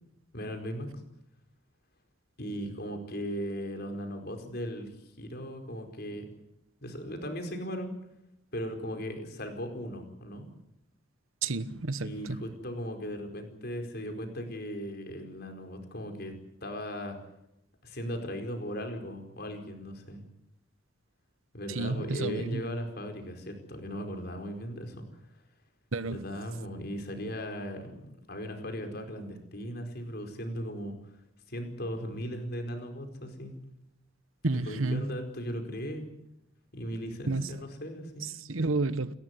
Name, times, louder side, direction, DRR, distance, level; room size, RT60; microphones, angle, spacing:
voice 1, 0.3-0.9 2.4-4.9 5.2-6.3 6.8-7.9 8.5-10.5 12.0-16.3 16.6-17.2 17.8-20.2 21.5-25.0 26.1-31.0 31.5-33.5 34.5-36.0 36.7-38.3, equal, 50° left, 4.8 m, -37 dB
voice 2, 11.4-12.4 21.7-22.6 25.9-26.2 34.4-35.1 37.3-37.5 38.2-39.2, right 3 dB, 80° right, 1.1 m, -31 dB
30.0 x 13.5 x 9.7 m
head